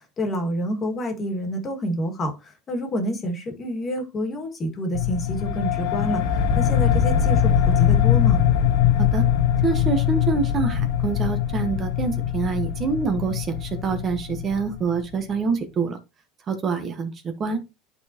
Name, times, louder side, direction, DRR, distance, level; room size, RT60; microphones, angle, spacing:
voice 1, 0.2-6.2 6.6-8.4, equal, 30° left, 1.9 m, -28 dB
sound 1, 4.9-15.1, left 9 dB, 70° left, 1.0 m, -22 dB
voice 2, 9.6-16.0 16.5-17.6, right 5 dB, 35° right, 1.1 m, -26 dB
11.5 x 4.0 x 2.9 m
supercardioid pair, 135°, 0 cm